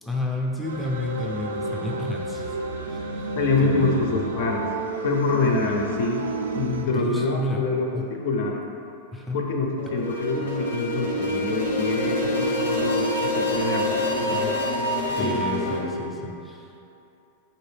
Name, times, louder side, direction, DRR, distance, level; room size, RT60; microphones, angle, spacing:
voice 1, 0.0-2.6 2.9-3.3 3.6-4.3 6.9-7.6 7.9-8.1 9.1-9.4 15.1-16.9, left 1 dB, 5° left, -2 dB, 0.5 m, -31 dB
sound 1, 0.6-6.9, right 3 dB, 90° right, 0.4 m, -31 dB
voice 2, 3.4-4.7 5.0-6.3 6.5-8.6 9.3-14.6 15.1-15.4, left 3 dB, 65° left, 1 dB, 0.6 m, -26 dB
sound 2, 9.8-15.8, left 1 dB, 90° left, 0.9 m, -26 dB
4.1 x 2.6 x 3.3 m, 2.7 s
hypercardioid pair, 125°, 0 cm